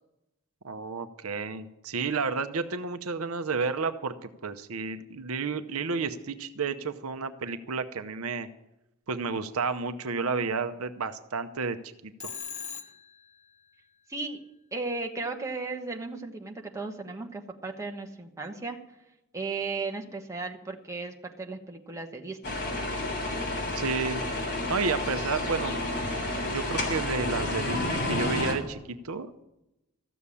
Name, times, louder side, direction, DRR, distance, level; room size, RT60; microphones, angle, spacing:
voice 1, 0.6-8.5 9.1-12.3 23.7-24.2 24.7-25.8 26.3-29.4, right 4 dB, 75° right, 10 dB, 0.8 m, -31 dB
Telephone, 12.2-13.3, left 7 dB, 30° left, 1.0 m, -39 dB
voice 2, 14.1-14.4 14.7-18.8 19.3-22.6, right 3 dB, 15° right, 2 dB, 1.2 m, -35 dB
sound 1, 22.4-28.5, left 1 dB, 50° left, 3.3 m, -30 dB
14.0 x 7.0 x 9.8 m, 0.91 s
head